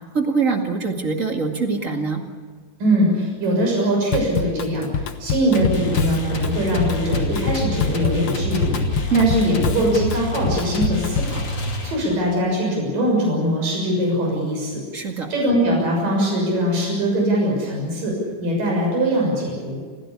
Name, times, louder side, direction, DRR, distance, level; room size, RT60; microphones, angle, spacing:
voice 1, 0.1-2.2 9.1-9.3 14.9-15.3, right 5 dB, 30° right, 3 dB, 2.0 m, -23 dB
voice 2, 2.8-11.4 11.8-14.8 15.3-18.2 18.4-19.8, equal, 75° right, -1 dB, 8.3 m, -22 dB
Drum kit / Drum, 4.1-11.4, left 6 dB, 60° left, 1.5 m, -26 dB
sound 1, 5.5-12.3, left 2 dB, 35° left, 3.2 m, -27 dB
27.5 x 16.5 x 8.7 m, 1.5 s
omnidirectional pair, 3.9 m